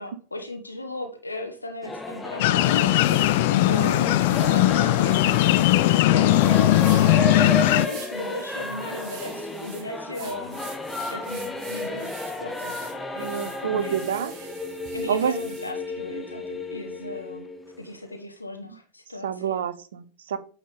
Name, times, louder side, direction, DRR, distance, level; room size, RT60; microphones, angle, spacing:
voice 1, 0.0-10.6 11.1-12.8 13.2-14.0 14.9-17.5 17.8-19.6, left 1 dB, 80° left, 5 dB, 0.9 m, -37 dB
sound 1, 1.3-1.4 2.0-2.1 2.5-15.7, right 7 dB, 35° right, 1.3 m, -46 dB
Singing / Musical instrument, 1.8-18.1, left 2 dB, 10° left, 0.8 m, -33 dB
sound 2, 2.4-7.9, left 15 dB, 50° left, 0.3 m, -19 dB
voice 2, 3.7-4.0 13.2-14.3 15.1-15.3 19.2-20.4, right 8 dB, 60° right, 12 dB, 0.7 m, -28 dB
8.4 x 3.9 x 3.4 m, 0.40 s
figure-of-eight pair, 90°, 0 cm